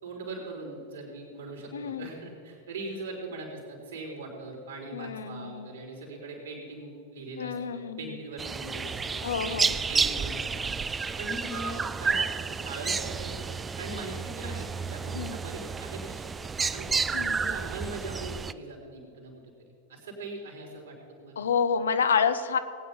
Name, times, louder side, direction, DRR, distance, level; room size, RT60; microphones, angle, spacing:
voice 1, 0.0-10.8 11.2-12.3 12.6-13.4 13.8-16.3 16.7-16.9 17.2-19.5 19.9-21.4, right 2 dB, 65° right, -2 dB, 3.9 m, -40 dB
voice 2, 1.7-2.1 4.9-5.8 7.4-8.1 9.2-9.7 15.1-15.4 17.1-17.4 21.4-22.6, left 6 dB, 65° left, 11 dB, 0.8 m, -28 dB
sound 1, 8.4-18.5, right 5 dB, 15° right, 0.4 m, -31 dB
19.0 x 9.4 x 5.4 m, 2.8 s
figure-of-eight pair, 90°, 0 cm